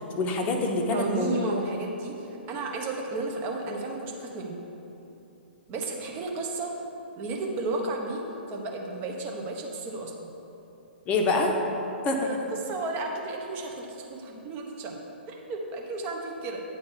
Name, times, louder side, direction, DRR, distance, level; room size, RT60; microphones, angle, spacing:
voice 1, 0.2-1.4 11.1-11.5 12.0-12.4, left 2 dB, 20° left, 2 dB, 0.9 m, -25 dB
voice 2, 0.9-4.5 5.7-6.7 7.2-10.3 12.2-14.9 15.3-16.6, right 2 dB, 30° right, 1 dB, 1.2 m, -33 dB
9.6 x 3.9 x 7.2 m, 2.9 s
figure-of-eight pair, 115°, 6 cm